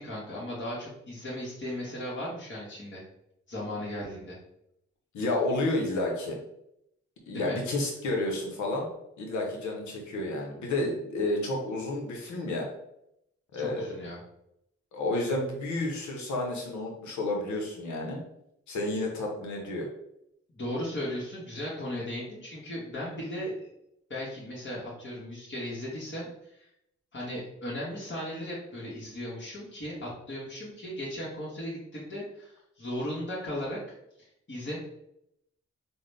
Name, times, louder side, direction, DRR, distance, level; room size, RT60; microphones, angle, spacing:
voice 1, 0.0-3.0 3.5-4.4 7.3-7.6 13.5-14.2 20.5-23.5 24.1-26.7 27.1-33.8 34.2-34.8, left 1 dB, 40° left, -6 dB, 1.5 m, -36 dB
voice 2, 5.1-6.4 7.3-8.9 9.2-12.7 13.5-14.0 14.9-18.2 18.7-19.9, left 2 dB, 80° left, 0 dB, 0.9 m, -30 dB
3.7 x 2.2 x 3.3 m, 0.79 s
supercardioid pair, 40°, 29 cm